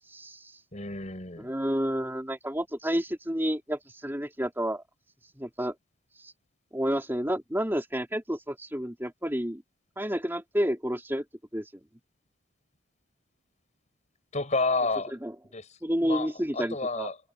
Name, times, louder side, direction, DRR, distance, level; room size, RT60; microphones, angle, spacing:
voice 1, 0.1-0.6 1.4-4.8 5.4-5.7 6.2-6.3 6.7-9.6 10.0-11.2 11.5-11.7 15.2-15.3 15.8-17.1, equal, 10° right, 3.6 m, -30 dB
voice 2, 0.7-1.5 14.3-15.1 15.5-15.7 16.0-17.2, left 3 dB, 35° left, 5.9 m, -30 dB
head